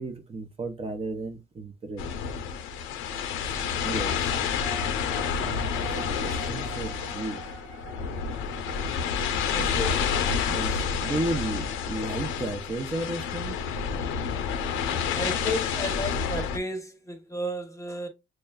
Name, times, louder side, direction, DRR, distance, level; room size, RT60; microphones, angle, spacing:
voice 1, 0.0-2.1 3.8-4.2 5.4-7.5 10.5-13.6, right 2 dB, 30° right, 0.7 m, -34 dB
sound 1, 2.0-16.6, left 6 dB, 85° left, 0.6 m, -29 dB
sound 2, 4.6-12.3, right 5 dB, 85° right, 1.5 m, -46 dB
voice 2, 9.5-10.1 15.1-18.1, left 1 dB, 15° left, 0.9 m, -33 dB
6.4 x 2.2 x 2.2 m
supercardioid pair, 75°, 20 cm